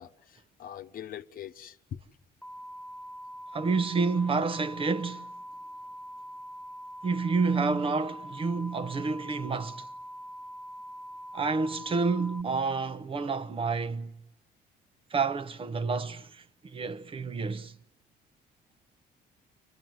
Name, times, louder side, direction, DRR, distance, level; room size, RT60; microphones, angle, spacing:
voice 1, 0.0-2.0, left 10 dB, 55° left, 1.1 m, -43 dB
sound 1, 2.4-12.4, equal, 5° left, 1.8 m, -43 dB
voice 2, 3.5-5.3 7.0-9.9 11.3-14.1 15.1-17.7, right 4 dB, 30° right, 1.0 m, -29 dB
30.0 x 24.0 x 7.8 m
cardioid pair, 110°, 17 cm